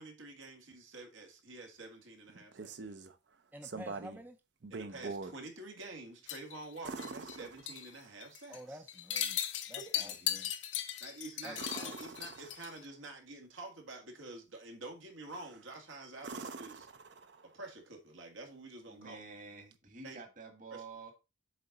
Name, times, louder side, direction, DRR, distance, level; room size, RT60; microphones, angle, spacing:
voice 1, 0.0-3.0 4.7-8.8 10.4-10.5 11.0-16.9 17.4-19.2 20.0-20.2 20.7-20.9, right 2 dB, 85° right, 1.9 m, -48 dB
sound 1, 2.3-3.1 3.6-4.3 4.6-5.4 6.8-8.1 11.5-12.8 15.3-15.7 16.2-17.6 19.7-19.8, right 4 dB, 60° right, 0.6 m, -44 dB
voice 2, 3.5-4.4 8.5-9.4 9.7-10.1 11.4-12.1, right 1 dB, 10° right, 0.4 m, -49 dB
Ceramic Wind Chime, 6.3-7.4 7.7-7.9 8.2-8.6 8.9-12.8, left 11 dB, 70° left, 0.7 m, -37 dB
voice 3, 10.0-10.5 11.4-11.6 18.9-21.1, right 4 dB, 40° right, 1.5 m, -50 dB
7.4 x 3.9 x 4.1 m
head